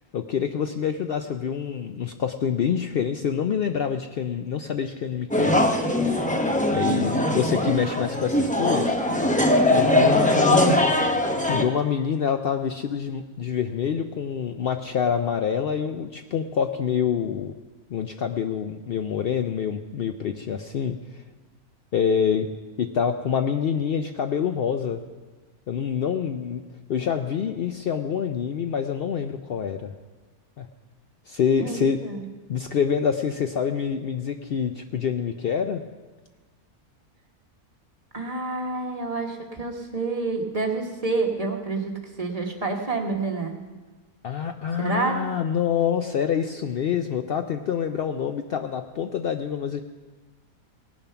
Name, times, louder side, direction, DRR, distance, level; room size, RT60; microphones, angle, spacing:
voice 1, 0.1-5.7 6.7-9.0 9.7-10.8 11.5-17.5 17.9-21.2 21.9-22.5 22.8-25.0 25.7-26.6 26.9-29.9 30.6-30.7 31.3-32.0 32.5-35.8 44.2-49.8, left 7 dB, 90° left, 7 dB, 0.5 m, -26 dB
sound 1, 5.3-11.6, left 1 dB, 10° left, 0.4 m, -21 dB
voice 2, 10.6-11.0 31.6-32.2 38.1-41.9 42.2-43.5 44.8-45.2, right 3 dB, 25° right, 1 dB, 1.2 m, -28 dB
18.0 x 7.0 x 5.7 m, 1.3 s
omnidirectional pair, 1.6 m